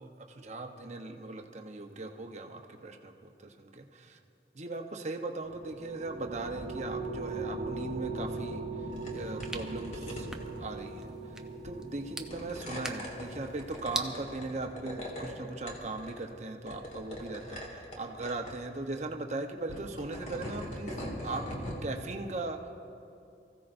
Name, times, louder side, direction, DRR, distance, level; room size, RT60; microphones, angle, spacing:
voice 1, 0.0-3.1 3.4-4.2 4.5-8.6 9.0-10.3 10.6-11.1 11.6-22.7, right 2 dB, 40° right, 4 dB, 0.9 m, -39 dB
sound 1, 5.4-15.2, right 3 dB, 85° right, 1.3 m, -40 dB
sound 2, 8.9-9.1 9.4-10.8 11.7-11.9 12.3-15.3 15.7-16.3 16.7-18.0 18.2-18.6 19.6-21.8, equal, 40° left, 2.0 m, -41 dB
sound 3, 8.9-14.1, right 2 dB, 5° right, 0.6 m, -43 dB
24.5 x 15.5 x 2.6 m, 2.5 s
head